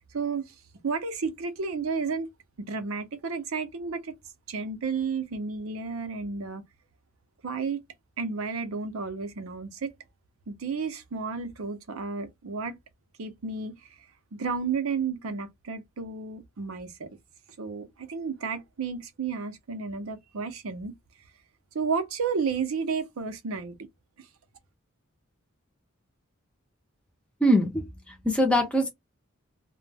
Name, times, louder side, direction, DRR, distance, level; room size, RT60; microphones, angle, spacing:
voice 1, 0.1-0.5 0.8-2.3 2.7-4.2 4.5-6.6 7.4-7.8 8.2-9.9 10.5-12.8 13.2-13.8 14.3-17.1 17.6-20.9 21.7-23.9, right 5 dB, 90° right, 0.6 m, -32 dB
voice 2, 27.4-28.9, equal, 5° left, 0.7 m, -23 dB
2.2 x 2.0 x 3.3 m
head